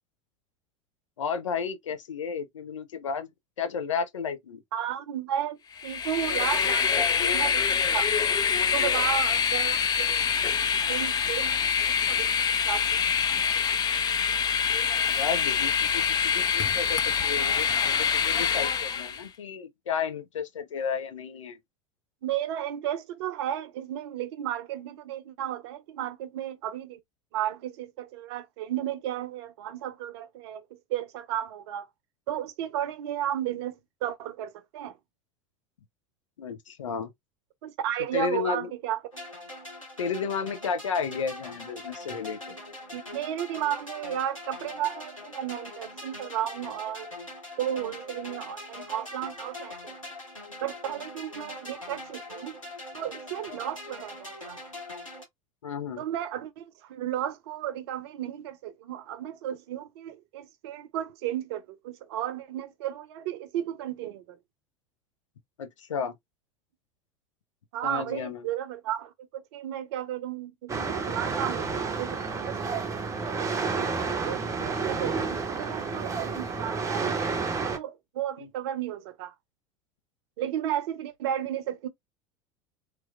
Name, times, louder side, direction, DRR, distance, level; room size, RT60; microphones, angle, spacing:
voice 1, 1.2-3.3 3.6-4.6 15.1-21.6 36.4-37.1 38.1-38.7 40.0-42.5 55.6-56.0 65.6-66.1 67.8-68.5, left 6 dB, 70° left, 0.7 m, -32 dB
voice 2, 4.7-8.1 8.7-10.2 10.9-11.6 11.9-13.1 22.2-27.0 27.3-31.9 32.3-35.0 37.6-39.0 42.9-47.1 47.6-50.0 50.6-52.6 52.9-54.6 56.0-64.4 67.7-72.8 73.4-77.3 77.6-79.3 80.4-81.9, right 11 dB, 55° right, 0.7 m, -34 dB
Train, 5.8-19.2, left 7 dB, 25° left, 0.5 m, -25 dB
sound 1, 39.1-55.2, left 2 dB, 85° left, 1.6 m, -42 dB
sound 2, 70.7-77.8, right 4 dB, 20° right, 0.7 m, -30 dB
3.3 x 3.0 x 2.3 m
figure-of-eight pair, 75°, 17 cm